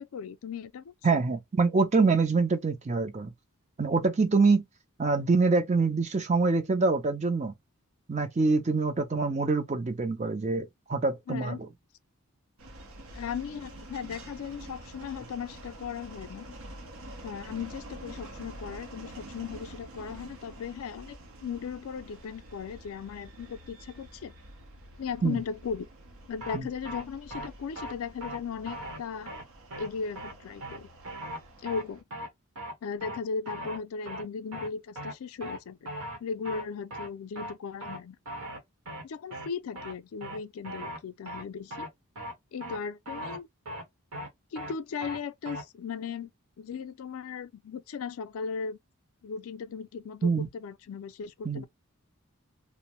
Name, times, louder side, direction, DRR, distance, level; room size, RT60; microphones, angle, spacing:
voice 1, 0.0-1.2 11.3-11.6 13.1-16.5 17.2-24.3 25.0-25.9 26.3-29.3 29.8-30.9 31.6-32.0 32.8-35.8 36.2-38.2 39.0-41.9 42.5-43.5 44.5-46.3 46.6-48.8 49.2-51.7, left 6 dB, 75° left, 0.4 m, -37 dB
voice 2, 1.0-3.3 3.8-4.6 5.0-7.5 8.1-11.6 25.2-25.4 26.5-26.7 50.2-50.5 51.4-51.7, right 4 dB, 30° right, 0.4 m, -25 dB
sound 1, 12.6-32.0, right 1 dB, 70° right, 0.7 m, -47 dB
sound 2, 26.4-26.6 26.8-27.0 27.3-27.5 27.8-27.9 28.2-28.4 28.7-29.0 29.3-29.4 29.7-29.9 30.2-30.3 30.6-30.8 31.0-31.4 31.7-31.8 32.1-32.3 32.6-32.7 33.0-33.2 33.5-33.8 34.1-34.2 34.5-34.7 35.0-35.1 35.4-35.6 35.9-36.2 36.4-36.6 36.9-37.1 37.4-37.5 37.8-38.0 38.3-38.6 38.9-39.0 39.3-39.5 39.8-39.9 40.2-40.4 40.6-41.0 41.3-41.4 41.7-41.9 42.2-42.3 42.6-42.8 43.1-43.4 43.7-43.8 44.1-44.3 44.6-44.7 45.0-45.2 45.5-45.6, equal, 90° right, 1.0 m, -38 dB
2.5 x 2.0 x 2.9 m
head